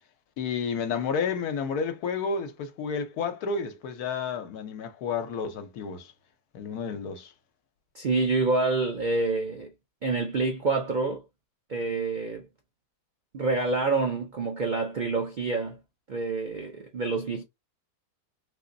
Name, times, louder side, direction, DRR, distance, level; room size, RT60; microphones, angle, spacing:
voice 1, 0.4-6.1 6.5-7.3, left 5 dB, 75° left, 1.2 m, -31 dB
voice 2, 7.9-9.7 10.0-11.2 11.7-12.5 13.3-15.8 16.1-17.4, right 3 dB, 85° right, 0.4 m, -27 dB
3.9 x 2.9 x 2.6 m
omnidirectional pair, 1.7 m